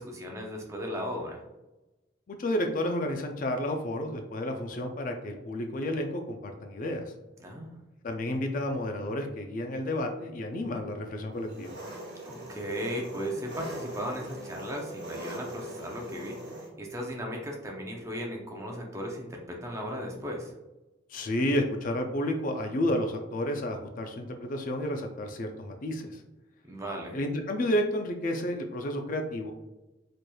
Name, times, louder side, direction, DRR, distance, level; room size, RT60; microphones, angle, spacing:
voice 1, 0.0-1.4 7.4-7.7 12.2-16.4 16.8-20.5 26.6-27.2, equal, 15° right, 0 dB, 0.6 m, -36 dB
voice 2, 2.3-7.1 8.0-11.7 21.1-26.2 27.1-29.5, left 1 dB, 45° left, 5 dB, 0.4 m, -31 dB
Engine, 11.4-16.7, right 1 dB, 60° right, 1.0 m, -41 dB
4.2 x 3.1 x 2.2 m, 1.0 s
head